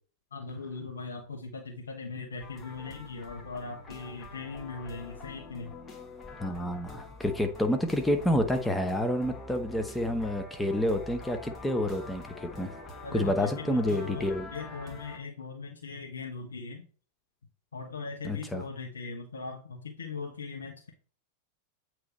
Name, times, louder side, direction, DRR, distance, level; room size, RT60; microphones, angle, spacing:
voice 1, 0.3-5.7 13.0-16.9 17.7-20.9, left 4 dB, 80° left, 1.1 m, -39 dB
sound 1, 2.4-15.2, left 3 dB, 25° left, 1.6 m, -46 dB
voice 2, 6.4-12.7 13.1-14.5 18.2-18.6, left 1 dB, 5° left, 0.9 m, -29 dB
8.2 x 3.2 x 4.1 m
figure-of-eight pair, 95°, 0 cm